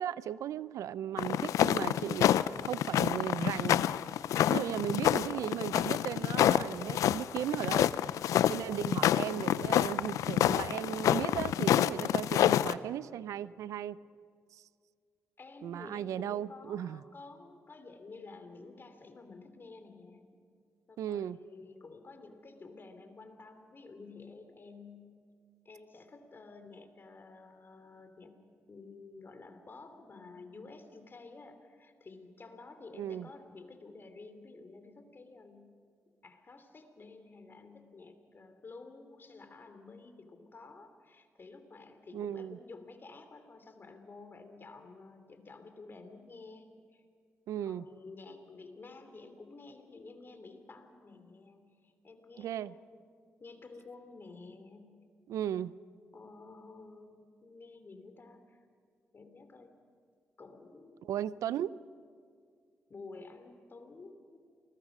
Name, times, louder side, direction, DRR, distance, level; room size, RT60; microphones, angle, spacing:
voice 1, 0.0-2.4 2.7-3.8 4.5-7.9 8.5-14.0 14.5-14.6 15.6-17.0 21.0-21.4 33.0-33.3 42.1-42.6 47.5-47.9 52.4-52.7 55.3-55.7 61.0-61.7, right 10 dB, 85° right, 18 dB, 0.5 m, -36 dB
sound 1, 1.2-12.7, left 11 dB, 85° left, 0.5 m, -28 dB
voice 2, 15.4-20.4 20.9-25.3 25.6-28.4 28.7-35.7 36.2-47.0 47.6-53.1 53.4-54.9 56.1-58.6 59.1-59.8 60.4-61.1 62.9-64.4, left 3 dB, 40° left, 8 dB, 3.0 m, -51 dB
29.0 x 20.5 x 6.1 m, 2.1 s
cardioid pair, 70°, 5 cm